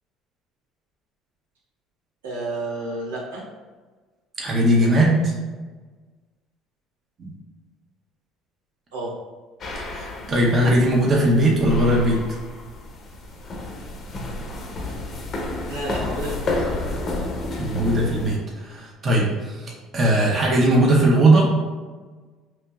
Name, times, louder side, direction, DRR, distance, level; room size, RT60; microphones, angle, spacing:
voice 1, 2.2-3.4 8.9-9.1 15.7-16.5, right 2 dB, 90° right, -5 dB, 1.0 m, -30 dB
voice 2, 4.4-5.3 7.2-7.3 9.7-12.2 17.6-21.5, right 1 dB, 40° right, -3 dB, 0.9 m, -19 dB
sound 1, 9.6-18.4, left 2 dB, 45° left, 0.7 m, -31 dB
4.3 x 2.9 x 2.3 m, 1.4 s
hypercardioid pair, 70°, 0 cm